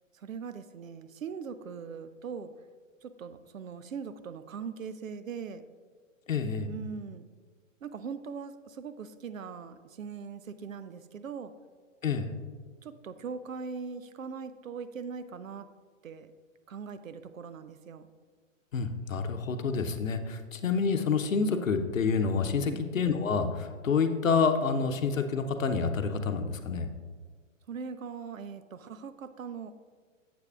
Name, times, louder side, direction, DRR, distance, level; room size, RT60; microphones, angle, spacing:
voice 1, 0.1-2.5 3.0-5.6 6.7-7.3 7.8-11.5 12.8-15.7 16.0-16.3 16.7-18.1 22.6-22.8 27.7-29.7, right 6 dB, 80° right, 12 dB, 0.6 m, -40 dB
voice 2, 6.3-6.7 12.0-12.3 18.7-26.9, left 5 dB, 80° left, 7 dB, 0.8 m, -28 dB
9.6 x 7.8 x 2.4 m, 1.5 s
figure-of-eight pair, 115°, 39 cm